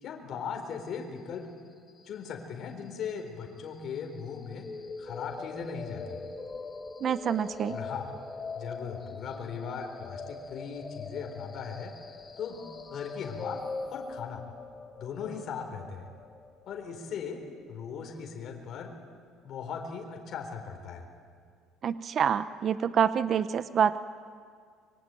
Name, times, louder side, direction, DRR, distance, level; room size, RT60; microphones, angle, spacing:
voice 1, 0.0-1.5 2.1-4.7 5.0-6.2 7.7-8.1 8.5-11.9 12.4-14.4 15.0-16.1 16.7-17.4 17.7-19.0 19.4-21.1, left 6 dB, 45° left, 3 dB, 4.2 m, -38 dB
sound 1, 4.6-18.6, left 4 dB, 25° left, 1.6 m, -42 dB
voice 2, 7.0-7.8 21.8-24.0, right 8 dB, 40° right, 13 dB, 0.8 m, -26 dB
24.5 x 24.0 x 9.2 m, 2.1 s
cardioid pair, 145°, 0 cm